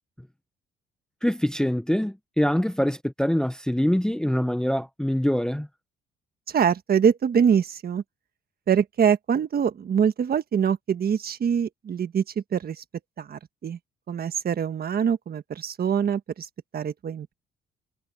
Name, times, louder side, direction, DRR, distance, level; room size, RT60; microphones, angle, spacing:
voice 1, 1.2-5.7, equal, 5° left, 0.7 m, -24 dB
voice 2, 6.5-8.0 8.7-12.2 12.5-12.8 13.2-13.8 14.1-17.3, right 7 dB, 50° right, 1.4 m, -24 dB
cardioid pair, 90°, 20 cm